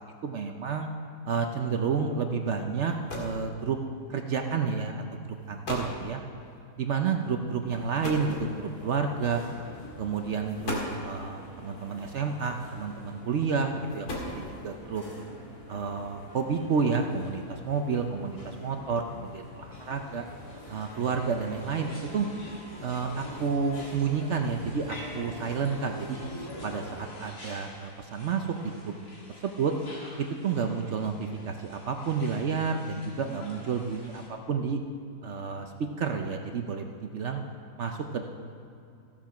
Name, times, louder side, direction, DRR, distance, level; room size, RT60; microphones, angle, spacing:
voice 1, 0.2-0.9 1.3-3.8 4.1-6.2 6.8-9.4 10.0-15.0 15.7-20.3 20.7-22.3 22.8-26.2 26.6-28.9 29.4-29.7 30.4-34.2 34.5-34.8 35.2-35.7 36.0-37.4 37.8-38.2, right 5 dB, 60° right, 4 dB, 0.9 m, -30 dB
sound 1, 2.8-3.5 4.5-4.7 5.3-5.4 5.6-6.0 8.0-8.9 9.8-10.0 10.5-11.1 12.4-12.9 13.7-14.8, left 2 dB, 90° left, 2.4 m, -37 dB
sound 2, 7.6-27.0, equal, 20° left, 1.7 m, -45 dB
sound 3, 19.7-34.3, left 1 dB, 60° left, 2.4 m, -49 dB
15.0 x 7.4 x 5.8 m, 2.5 s
omnidirectional pair, 1.6 m